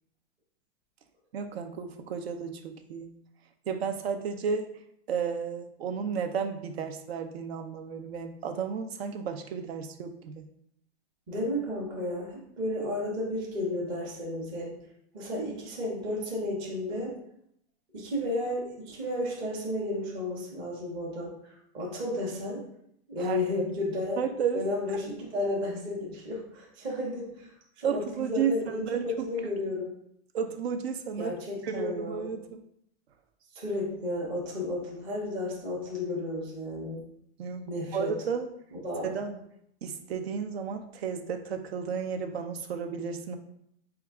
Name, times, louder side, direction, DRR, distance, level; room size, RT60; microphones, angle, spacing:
voice 1, 1.3-3.1 3.7-4.7 5.1-10.5 23.2-23.7 24.2-24.6 27.8-29.1 29.4-29.5 30.3-31.4 31.6-32.6 37.4-38.5 39.0-39.4 39.8-43.4, right 6 dB, 70° right, 7 dB, 0.5 m, -33 dB
voice 2, 11.3-14.7 15.1-17.2 17.9-21.3 21.7-22.6 23.1-24.2 24.5-29.9 31.2-32.3 33.5-37.0 37.7-38.1 38.7-39.1, left 1 dB, 15° right, -4 dB, 0.6 m, -33 dB
4.5 x 2.3 x 3.4 m, 0.73 s
hypercardioid pair, 170°, 32 cm